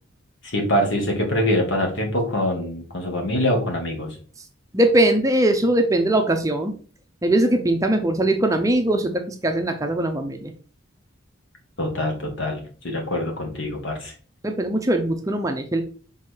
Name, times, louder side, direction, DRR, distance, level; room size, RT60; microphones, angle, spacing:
voice 1, 0.4-4.1 11.8-14.1, left 1 dB, 65° left, 1 dB, 1.9 m, -24 dB
voice 2, 4.7-6.7 7.2-10.5 14.4-15.8, right 1 dB, 15° right, 5 dB, 0.6 m, -21 dB
6.0 x 3.8 x 4.6 m, 0.41 s
head